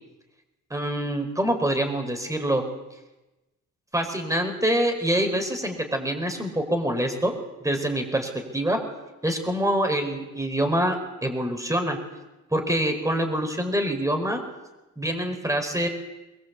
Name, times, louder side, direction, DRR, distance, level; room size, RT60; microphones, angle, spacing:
voice 1, 0.7-2.6 3.9-7.3 7.6-8.8 9.2-12.0 12.5-14.4 15.0-15.9, right 1 dB, 10° right, 5 dB, 5.1 m, -25 dB
24.0 x 21.5 x 8.5 m, 1.0 s
wide cardioid pair, 125°, 32 cm